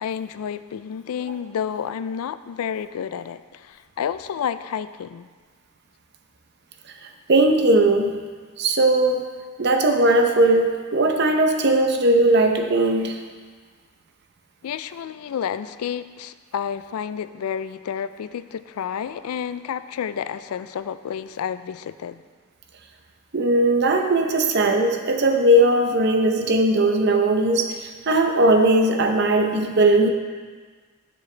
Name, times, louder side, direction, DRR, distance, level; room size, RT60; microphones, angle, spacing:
voice 1, 0.0-5.3 14.6-22.2, left 8 dB, 90° left, 13 dB, 0.3 m, -30 dB
voice 2, 7.0-8.1 8.6-9.2 9.6-13.2 23.3-30.1, right 1 dB, 50° right, 4 dB, 0.7 m, -19 dB
11.0 x 6.2 x 3.3 m, 1.5 s
head